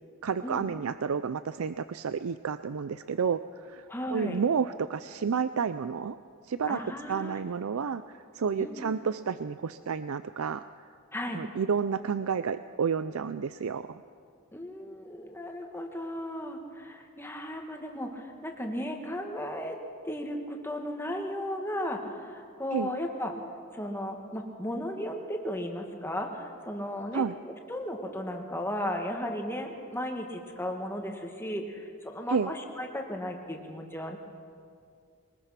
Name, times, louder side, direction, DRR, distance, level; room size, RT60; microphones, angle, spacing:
voice 1, 0.2-6.2 6.4-6.8 7.1-10.6 11.3-14.0 22.7-22.9 27.1-27.4 32.3-32.5, right 6 dB, 75° right, 13 dB, 0.5 m, -30 dB
voice 2, 3.9-4.4 6.7-7.4 8.6-8.9 11.1-11.4 14.5-19.8 20.1-23.3 23.7-27.2 27.7-34.2, equal, 10° left, 2 dB, 1.9 m, -35 dB
22.5 x 20.0 x 5.9 m, 2.3 s
head